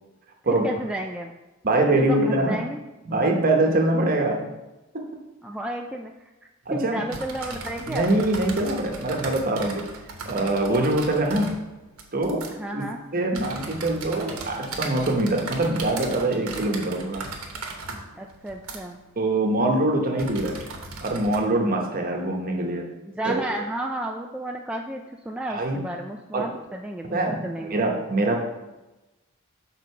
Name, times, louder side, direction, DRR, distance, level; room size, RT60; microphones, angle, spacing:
voice 1, 0.5-1.3 1.9-2.8 5.4-6.1 6.7-8.1 12.5-13.0 18.1-19.0 23.1-27.8, right 1 dB, 5° right, 1 dB, 0.3 m, -32 dB
voice 2, 1.6-2.6 3.1-4.5 4.9-5.1 6.7-7.0 7.9-9.9 10.2-11.6 12.1-12.5 12.7-12.8 13.1-17.2 19.2-20.6 21.0-22.9 23.3-23.4 25.5-25.8 26.3-26.5 27.1-27.5 27.7-28.4, right 2 dB, 40° right, 1 dB, 1.0 m, -23 dB
sound 1, 6.7-21.4, right 3 dB, 75° right, 1.1 m, -38 dB
6.4 x 3.9 x 5.5 m, 1.1 s
head